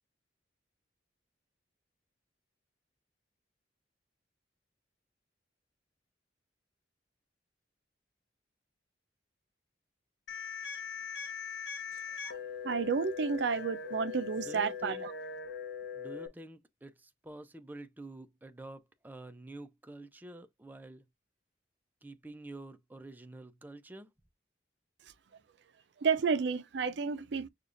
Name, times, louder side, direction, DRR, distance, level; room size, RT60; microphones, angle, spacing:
sound 1, 10.3-16.3, left 6 dB, 70° left, 0.9 m, -41 dB
voice 1, 12.6-15.1 26.0-27.5, right 5 dB, 65° right, 0.5 m, -31 dB
voice 2, 14.4-15.0 15.9-21.0 22.0-24.1, right 2 dB, 10° right, 0.4 m, -48 dB
6.6 x 2.3 x 2.5 m
head